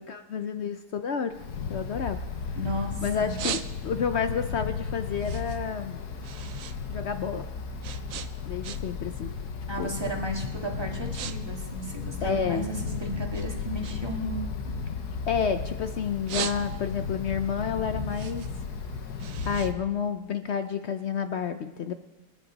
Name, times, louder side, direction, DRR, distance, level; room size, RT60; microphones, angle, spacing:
voice 1, 0.0-1.3 1.7-2.2 3.0-6.0 6.9-7.5 8.4-9.3 9.8-10.0 12.2-12.7 15.3-18.4 19.4-21.9, left 6 dB, 60° left, 9 dB, 0.7 m, -30 dB
Wind, 1.3-19.7, left 5 dB, 75° left, 1.7 m, -35 dB
voice 2, 2.6-2.9 3.2-3.4 9.7-14.7, right 1 dB, 15° right, 0 dB, 2.0 m, -34 dB
sound 1, 3.4-4.2 4.6-6.8 7.1-9.1 9.4-9.7 10.3-10.5 10.8-11.4 11.6-12.9 13.3-15.6 16.0-17.1 17.5-20.6, right 9 dB, 65° right, 1.0 m, -39 dB
25.5 x 9.8 x 4.0 m, 1.2 s
omnidirectional pair, 1.7 m